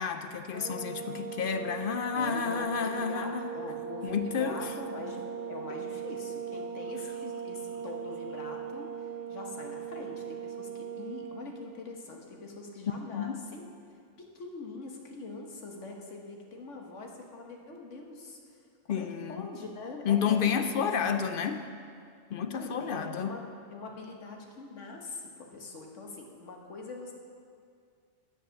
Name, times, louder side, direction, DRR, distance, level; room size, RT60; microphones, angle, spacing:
voice 1, 0.0-3.5 4.0-4.7 13.1-13.4 18.9-19.5 20.0-21.7 22.3-23.4, left 7 dB, 60° left, 8 dB, 0.6 m, -30 dB
sound 1, 0.5-11.6, right 7 dB, 50° right, 0.7 m, -39 dB
voice 2, 2.1-5.2 5.5-13.7 14.2-18.4 18.8-20.9 22.5-27.1, left 3 dB, 85° left, 1 dB, 1.6 m, -43 dB
sound 2, 2.6-8.6, left 2 dB, 20° left, 1.6 m, -56 dB
10.5 x 7.5 x 6.3 m, 2.2 s
omnidirectional pair, 1.2 m